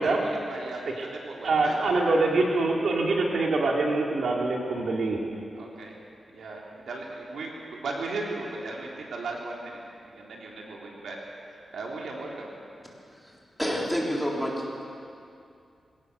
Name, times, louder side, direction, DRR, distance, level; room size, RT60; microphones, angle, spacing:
voice 1, 0.0-1.8 5.5-6.0 6.2-9.8 10.0-11.2 11.5-12.5, right 3 dB, 90° right, -2 dB, 3.4 m, -37 dB
voice 2, 1.4-5.2, right 3 dB, 75° right, 0 dB, 2.5 m, -24 dB
voice 3, 13.6-14.9, equal, ahead, -3 dB, 3.6 m, -28 dB
22.0 x 17.5 x 6.7 m, 2.5 s
wide cardioid pair, 125°, 0 cm